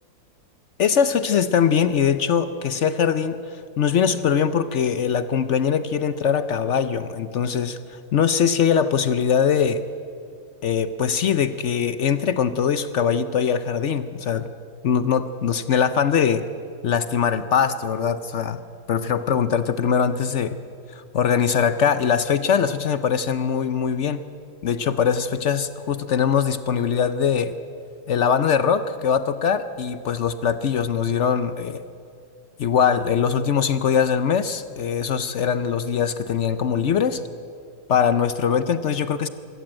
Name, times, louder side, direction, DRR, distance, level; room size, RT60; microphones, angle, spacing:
voice 1, 0.8-3.4 3.8-9.8 10.6-14.5 14.8-16.5 16.8-18.6 18.9-20.6 21.1-24.2 24.6-27.5 28.1-31.8 32.6-37.2 37.9-39.3, left 7 dB, 65° left, 12 dB, 0.7 m, -22 dB
24.0 x 14.0 x 8.9 m, 2.5 s
omnidirectional pair, 2.0 m